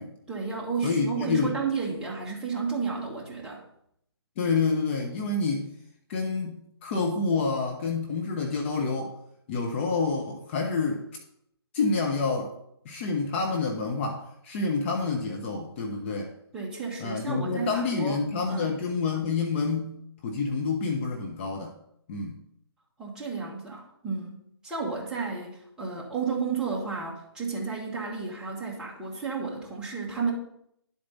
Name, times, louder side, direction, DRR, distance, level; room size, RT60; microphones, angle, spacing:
voice 1, 0.3-3.6 16.5-18.2 18.5-18.7 23.0-30.3, right 5 dB, 5° right, -4 dB, 1.8 m, -32 dB
voice 2, 0.8-1.6 4.4-5.7 6.1-9.1 9.5-11.0 11.7-12.5 12.8-16.3 17.0-21.7 22.1-22.4, left 4 dB, 30° left, 2 dB, 1.1 m, -28 dB
11.5 x 7.8 x 4.1 m, 0.74 s
figure-of-eight pair, 145°, 14 cm